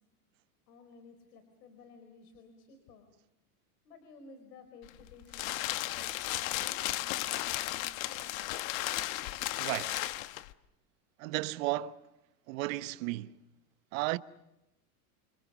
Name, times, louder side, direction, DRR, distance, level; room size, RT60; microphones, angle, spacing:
voice 1, 0.7-3.1 3.8-8.4, left 4 dB, 75° left, 4.7 m, -55 dB
sound 1, 4.8-10.5, left 16 dB, 60° left, 1.2 m, -35 dB
voice 2, 9.6-10.0 11.2-12.0 12.5-13.3 13.9-14.2, right 18 dB, 55° right, 1.1 m, -34 dB
28.5 x 26.0 x 6.3 m
supercardioid pair, 140°, 47 cm